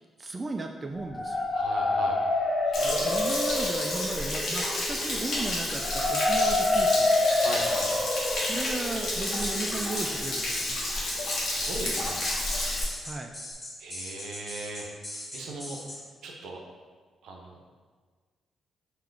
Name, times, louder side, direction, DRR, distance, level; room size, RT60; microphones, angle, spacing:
voice 1, 0.2-1.4 3.0-7.1 8.4-10.8 13.0-13.3, right 3 dB, 30° right, 4 dB, 0.4 m, -35 dB
sound 1, 1.0-10.8, left 2 dB, 45° left, 1.0 m, -28 dB
voice 2, 1.5-2.1 2.6-3.4 7.4-7.9 11.4-12.5 13.8-16.6 17.2-17.7, right 2 dB, 75° right, 0 dB, 0.7 m, -39 dB
Stream / Splash splatter / Trickle dribble, 2.7-12.8, left 1 dB, 65° left, 1.3 m, -31 dB
sound 2, 9.4-16.0, left 1 dB, 25° left, 1.3 m, -40 dB
3.7 x 2.9 x 4.6 m, 1.5 s
supercardioid pair, 50°, 0 cm